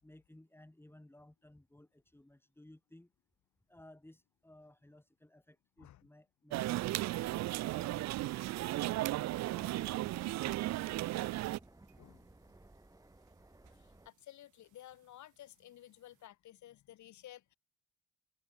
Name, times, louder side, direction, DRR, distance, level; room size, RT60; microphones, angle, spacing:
voice 1, 0.0-3.1 3.7-8.3 8.9-9.1 9.4-11.0, left 1 dB, 5° left, 4.9 m, -59 dB
voice 2, 5.8-6.1 10.3-10.4 12.0-12.5 13.6-17.6, left 13 dB, 70° left, 1.3 m, -55 dB
sound 1, 6.5-11.6, right 16 dB, 65° right, 0.4 m, -35 dB
sound 2, 7.1-14.1, right 2 dB, 10° right, 4.9 m, -60 dB
sound 3, 7.3-16.3, right 16 dB, 85° right, 1.4 m, -62 dB
cardioid pair, 90°, 30 cm